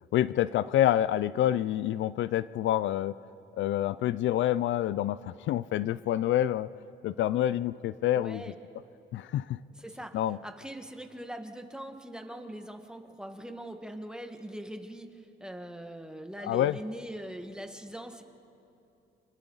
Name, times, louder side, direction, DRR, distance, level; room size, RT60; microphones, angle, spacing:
voice 1, 0.1-3.2 3.6-6.7 7.0-8.4 9.1-9.6 10.1-10.4 16.4-16.8, left 12 dB, 70° left, 17 dB, 0.4 m, -27 dB
voice 2, 8.1-8.6 9.7-18.2, right 1 dB, 5° right, 5 dB, 1.6 m, -42 dB
29.0 x 25.5 x 4.0 m, 2.8 s
cardioid pair, 90°, 20 cm